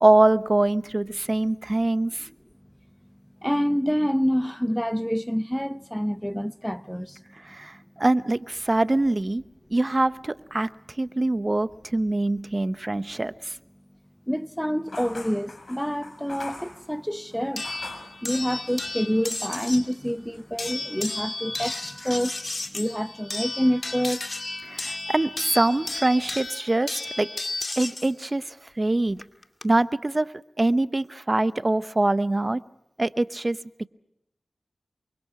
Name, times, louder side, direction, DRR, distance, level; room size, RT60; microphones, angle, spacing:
voice 1, 0.0-2.3 7.4-9.4 9.7-10.7 11.0-13.6 24.6-27.3 27.8-29.2 29.6-30.3 30.6-32.6 33.0-33.6, right 2 dB, 35° right, 0.9 m, -24 dB
voice 2, 3.4-7.2 14.3-17.7 18.2-24.9, equal, 5° left, 1.0 m, -27 dB
sound 1, 14.9-18.2 18.7-19.4 19.7-20.7, left 2 dB, 55° left, 6.6 m, -43 dB
sound 2, 17.6-19.9 20.6-28.1 29.2-29.6, left 2 dB, 40° left, 2.3 m, -33 dB
29.0 x 24.0 x 4.8 m
cardioid pair, 45°, 0 cm